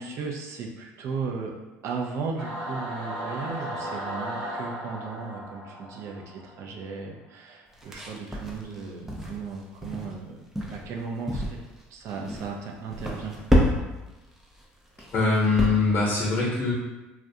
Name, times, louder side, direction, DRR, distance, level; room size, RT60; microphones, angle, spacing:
voice 1, 0.0-1.5 1.8-11.6 11.9-13.4 13.7-13.9, right 5 dB, 60° right, 0 dB, 0.5 m, -36 dB
Singing / Musical instrument, 2.4-7.0, right 1 dB, 90° right, 1.3 m, -36 dB
sound 1, 7.7-9.5 9.8-10.1 10.6-10.9 11.3-11.8 12.1-12.5 12.9-14.1 14.4-14.6 15.0-15.7, equal, 5° right, 0.5 m, -27 dB
voice 2, 15.1-16.7, left 3 dB, 45° left, -6 dB, 0.8 m, -23 dB
2.4 x 2.1 x 2.7 m, 1.1 s
supercardioid pair, 80°, 5 cm